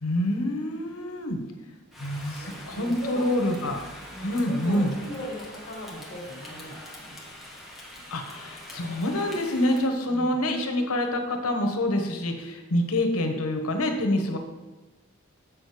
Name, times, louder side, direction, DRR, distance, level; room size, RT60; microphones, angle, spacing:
voice 1, 0.0-1.4 2.0-3.8 4.2-4.9 8.1-14.4, left 1 dB, 80° left, 4 dB, 1.2 m, -26 dB
Rain, 1.9-9.9, left 1 dB, ahead, 1.2 m, -44 dB
voice 2, 2.2-3.3 4.1-7.2 10.1-10.3, equal, 40° left, -4 dB, 1.9 m, -39 dB
7.5 x 6.3 x 5.0 m, 1.1 s
head